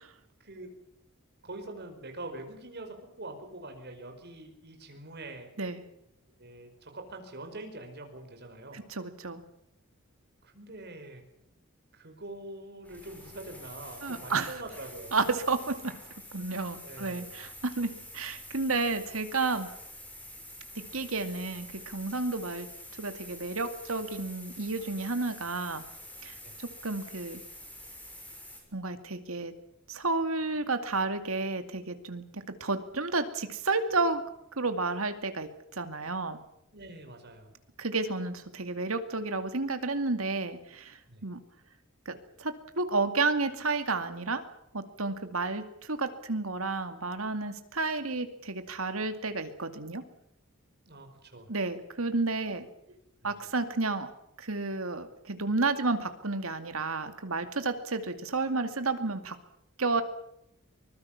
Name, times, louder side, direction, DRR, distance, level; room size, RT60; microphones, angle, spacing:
voice 1, 1.4-5.5 6.4-8.8 10.4-11.2 11.9-15.2 16.8-17.3 26.4-26.5 36.7-37.5 41.1-41.2 50.8-51.5 52.4-52.5 53.2-53.5, right 2 dB, 50° right, 5 dB, 5.0 m, -44 dB
voice 2, 8.7-9.4 14.0-14.5 15.1-15.9 16.3-19.7 20.9-22.7 23.0-25.8 26.2-27.4 28.7-29.5 29.9-34.2 34.6-36.4 37.8-41.4 42.1-44.4 44.7-50.0 51.5-52.6 53.2-54.1 54.4-59.4 59.8-60.0, right 3 dB, 75° right, 8 dB, 2.4 m, -31 dB
sound 1, 12.8-28.6, left 1 dB, 5° left, 6.5 m, -47 dB
24.5 x 20.5 x 7.3 m, 0.77 s
head